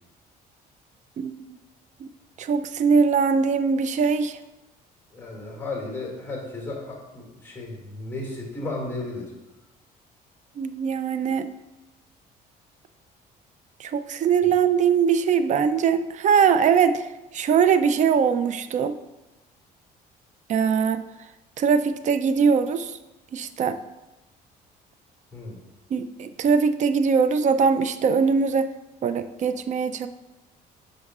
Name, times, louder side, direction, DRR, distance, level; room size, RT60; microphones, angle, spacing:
voice 1, 1.2-1.5 2.0-2.1 2.4-4.4 10.6-11.5 13.8-17.1 17.3-19.0 20.5-21.0 21.6-23.0 23.3-23.8 25.9-28.7 29.0-30.1, right 6 dB, 45° right, 11 dB, 0.4 m, -21 dB
voice 2, 5.1-9.3 14.4-14.5 25.3-25.6, left 2 dB, 15° left, -2 dB, 2.2 m, -34 dB
8.2 x 5.7 x 2.4 m, 0.99 s
cardioid pair, 110°, 17 cm